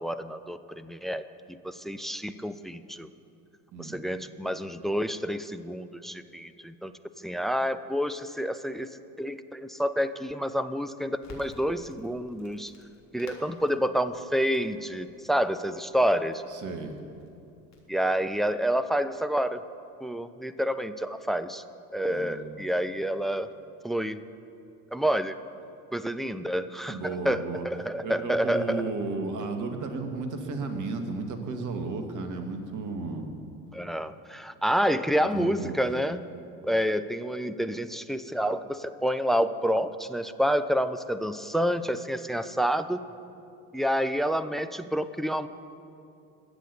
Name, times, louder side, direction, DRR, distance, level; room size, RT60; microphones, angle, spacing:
voice 1, 0.0-3.1 3.8-12.7 13.1-16.4 17.9-19.6 20.0-21.6 21.9-23.5 23.8-24.2 24.9-25.4 25.9-28.8 33.7-36.3 36.6-43.0 43.7-45.5, equal, ahead, 12 dB, 0.4 m, -28 dB
Crackle, 11.2-19.1, left 3 dB, 35° left, 3.6 m, -54 dB
voice 2, 16.5-16.9 22.1-22.6 26.9-27.7 28.0-33.3 35.2-35.8, right 3 dB, 40° right, 5 dB, 2.2 m, -34 dB
21.5 x 8.1 x 7.0 m, 2.7 s
figure-of-eight pair, 65°, 45 cm